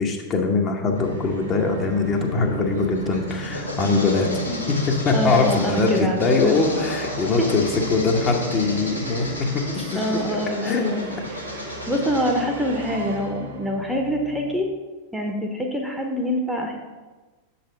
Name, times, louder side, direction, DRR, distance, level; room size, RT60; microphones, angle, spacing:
voice 1, 0.0-4.3 4.7-10.2 10.6-11.1, left 4 dB, 30° left, 2 dB, 0.9 m, -22 dB
Musical instrument, 0.9-14.6, right 1 dB, 70° right, 1.3 m, -35 dB
sound 1, 2.8-12.4, left 1 dB, 85° left, 1.1 m, -33 dB
voice 2, 5.1-6.6 7.4-7.5 9.9-11.4 11.9-14.7 15.1-16.7, equal, 5° right, 2 dB, 0.8 m, -25 dB
6.5 x 4.2 x 5.2 m, 1.3 s
figure-of-eight pair, 90°, 0 cm